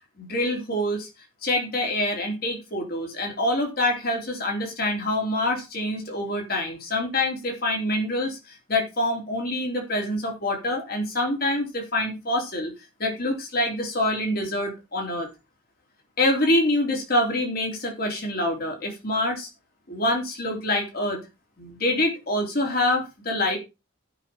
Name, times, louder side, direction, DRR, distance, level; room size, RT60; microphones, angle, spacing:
voice 1, 0.2-1.1 1.4-8.4 8.7-12.7 13.0-15.3 16.2-19.5 19.9-21.2 21.6-23.6, left 1 dB, 50° left, 1 dB, 3.4 m, -26 dB
15.5 x 6.0 x 4.4 m, 0.27 s
head